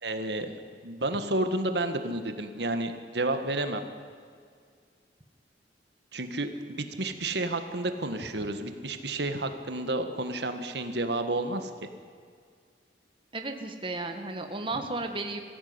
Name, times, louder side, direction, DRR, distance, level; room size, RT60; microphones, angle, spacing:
voice 1, 0.0-0.5 0.8-3.8 6.1-11.9, right 2 dB, 75° right, 7 dB, 1.7 m, -31 dB
voice 2, 13.3-15.4, right 2 dB, 30° right, 5 dB, 1.6 m, -34 dB
22.0 x 15.5 x 9.6 m, 2.1 s
head